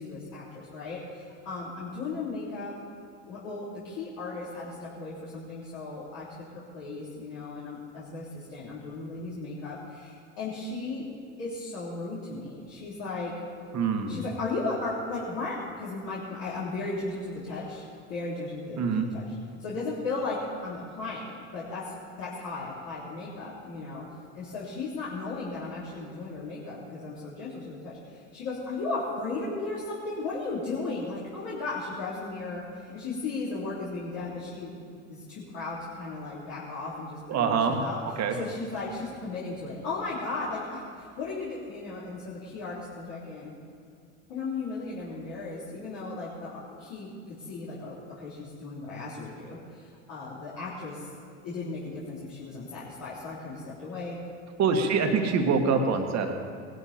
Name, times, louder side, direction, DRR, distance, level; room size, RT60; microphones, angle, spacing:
voice 1, 0.0-2.7 3.3-6.3 6.5-11.1 11.4-13.3 14.1-19.3 19.6-24.1 24.3-38.0 38.3-43.5 44.3-51.0 51.4-54.2, left 3 dB, 60° left, -8 dB, 3.6 m, -36 dB
voice 2, 13.7-14.2 18.8-19.1 37.3-37.8 38.2-38.4 54.6-56.3, right 5 dB, 45° right, 4 dB, 1.9 m, -25 dB
19.0 x 13.0 x 4.4 m, 2.3 s
hypercardioid pair, 80°, 36 cm